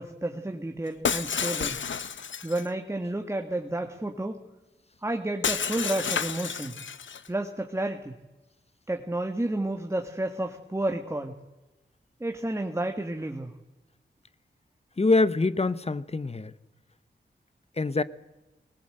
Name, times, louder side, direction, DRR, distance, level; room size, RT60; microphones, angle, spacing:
voice 1, 0.0-1.8 2.4-4.4 5.0-6.8 7.3-8.2 8.9-11.3 12.2-13.5, right 1 dB, 15° right, 1.6 m, -31 dB
Shatter, 1.0-2.7 5.4-7.3, left 6 dB, 85° left, 0.8 m, -30 dB
voice 2, 15.0-16.5 17.8-18.0, left 3 dB, 35° left, 0.9 m, -24 dB
20.5 x 20.0 x 7.8 m
wide cardioid pair, 85°, 19 cm